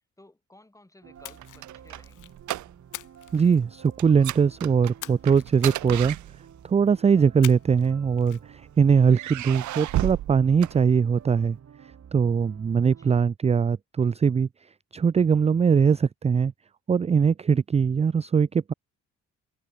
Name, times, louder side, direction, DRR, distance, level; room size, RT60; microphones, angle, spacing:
voice 1, 0.2-2.4 13.0-13.3, left 1 dB, 10° left, 5.3 m, -55 dB
sound 1, 1.0-13.2, right 8 dB, 55° right, 4.7 m, -50 dB
Splash splatter, 1.2-2.4 2.9-4.1 5.0-6.3 7.4-7.9 8.2-8.4, left 15 dB, 80° left, 1.3 m, -43 dB
sound 2, 1.2-3.1 3.3-3.6 4.0-6.8 7.7-8.5 9.1-11.4, right 15 dB, 75° right, 0.8 m, -33 dB
voice 2, 3.3-6.2 6.6-11.6 12.1-14.5 14.9-16.5 16.9-18.7, right 6 dB, 20° right, 0.4 m, -21 dB
cardioid pair, 90°, 30 cm